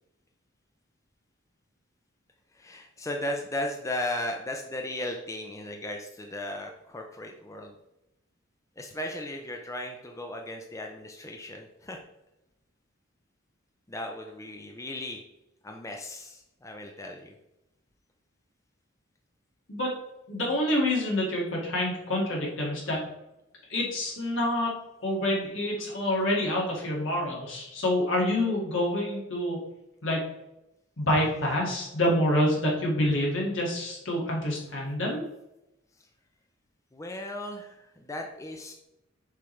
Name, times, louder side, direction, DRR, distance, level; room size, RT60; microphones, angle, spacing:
voice 1, 2.5-7.7 8.8-12.0 13.9-15.2 15.6-17.3 36.9-38.7, left 1 dB, 15° left, 2 dB, 0.5 m, -36 dB
voice 2, 20.3-23.0 23.7-24.7 25.0-29.6 30.0-30.2 31.0-35.2, left 1 dB, 75° left, -2 dB, 2.2 m, -27 dB
6.9 x 5.1 x 3.3 m, 0.89 s
head